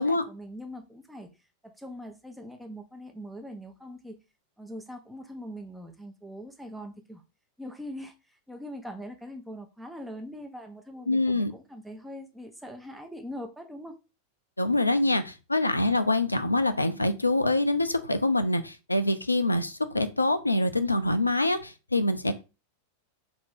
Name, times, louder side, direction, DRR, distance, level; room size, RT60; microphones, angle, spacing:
voice 1, 0.0-1.3 1.6-4.2 4.6-7.2 7.6-14.0, equal, 5° right, 0.6 m, -42 dB
voice 2, 11.1-11.5 14.6-22.4, left 2 dB, 85° left, 0.3 m, -25 dB
3.8 x 2.5 x 3.5 m
figure-of-eight pair, 90°, 0 cm